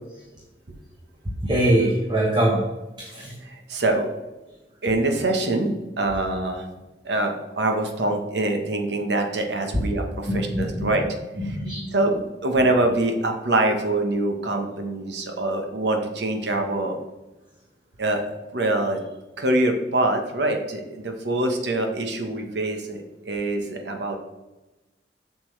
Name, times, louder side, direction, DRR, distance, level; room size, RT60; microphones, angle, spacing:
voice 1, 1.4-2.6 3.0-3.3 10.3-10.9 11.4-11.9, right 1 dB, 25° right, -2 dB, 1.2 m, -23 dB
voice 2, 3.4-4.1 4.8-6.7 7.0-11.0 11.4-11.6 11.9-17.0 18.0-18.2 18.5-19.0 19.4-24.2, right 2 dB, 80° right, 4 dB, 1.2 m, -24 dB
7.4 x 6.9 x 3.3 m, 1.1 s
head